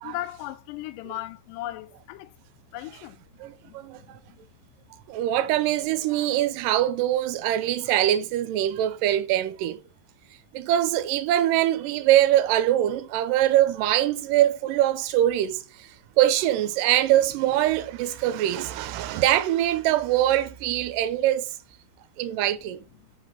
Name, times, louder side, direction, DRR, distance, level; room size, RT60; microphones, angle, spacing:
voice 1, 0.0-2.3 2.7-3.2 3.6-4.2, left 15 dB, 90° left, 2.2 m, -37 dB
voice 2, 3.4-4.0 5.1-9.8 10.5-21.6 22.2-22.8, right 13 dB, 85° right, 2.3 m, -23 dB
5.2 x 4.1 x 5.5 m
omnidirectional pair, 3.8 m